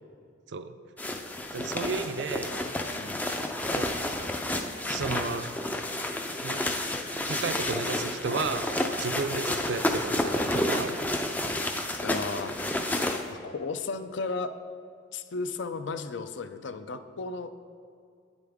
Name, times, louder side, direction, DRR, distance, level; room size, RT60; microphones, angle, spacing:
sound 1, 1.0-13.3, left 1 dB, 10° left, 0.3 m, -30 dB
voice 1, 1.5-2.6 3.7-3.9 4.8-5.5 6.4-6.6 7.3-11.1, right 4 dB, 60° right, 10 dB, 0.4 m, -33 dB
voice 2, 12.0-12.8 13.3-14.5 15.1-17.5, left 4 dB, 70° left, 10 dB, 0.5 m, -35 dB
9.2 x 8.2 x 3.5 m, 2.4 s
head